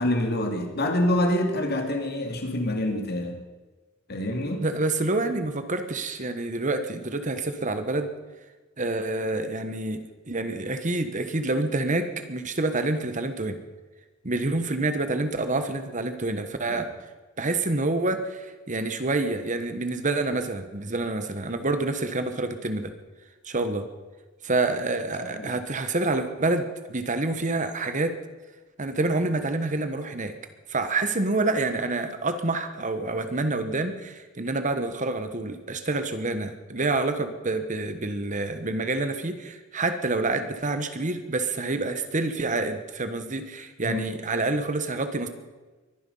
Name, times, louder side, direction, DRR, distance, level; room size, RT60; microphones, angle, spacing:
voice 1, 0.0-3.4 4.1-4.7 16.7-16.8 25.2-25.5 43.8-44.1, left 1 dB, 55° left, 4 dB, 2.6 m, -26 dB
voice 2, 4.6-8.1 8.8-13.6 14.2-16.9 17.4-22.9 23.4-23.8 24.4-28.2 28.8-30.3 30.7-45.3, right 2 dB, 40° right, 9 dB, 1.3 m, -27 dB
23.0 x 10.5 x 5.6 m, 1.3 s
head